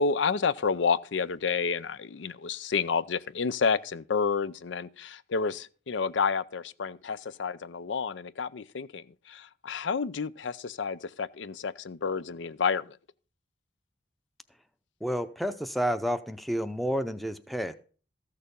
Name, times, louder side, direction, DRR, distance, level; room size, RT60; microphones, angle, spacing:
voice 1, 0.0-13.0, left 5 dB, 90° left, 0.5 m, -30 dB
voice 2, 15.0-17.7, equal, ahead, 0.6 m, -30 dB
14.0 x 6.7 x 5.2 m
head